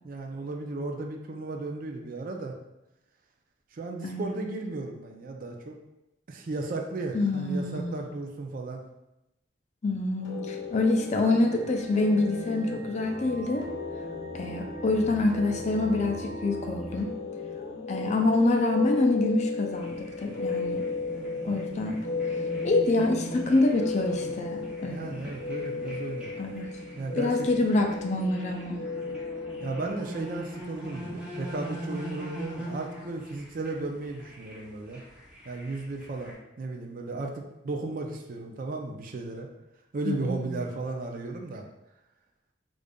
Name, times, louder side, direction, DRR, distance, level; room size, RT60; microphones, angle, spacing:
voice 1, 0.0-2.5 3.7-5.8 6.3-8.8 24.8-26.3 27.0-27.5 29.6-35.0 35.5-39.5 39.9-41.6, right 2 dB, 50° right, 2 dB, 0.4 m, -35 dB
voice 2, 4.0-4.4 7.1-8.1 9.8-13.7 14.3-17.1 17.9-20.8 21.4-22.0 22.6-25.2 26.4-26.6 27.2-28.8 40.1-40.6, left 2 dB, 40° left, 3 dB, 0.4 m, -26 dB
sound 1, 10.2-29.9, left 4 dB, 75° left, 0.7 m, -36 dB
sound 2, 11.3-17.0, right 1 dB, 75° right, 1.1 m, -41 dB
sound 3, 19.7-36.3, right 1 dB, 5° right, 0.8 m, -41 dB
5.0 x 2.5 x 2.2 m, 0.91 s
head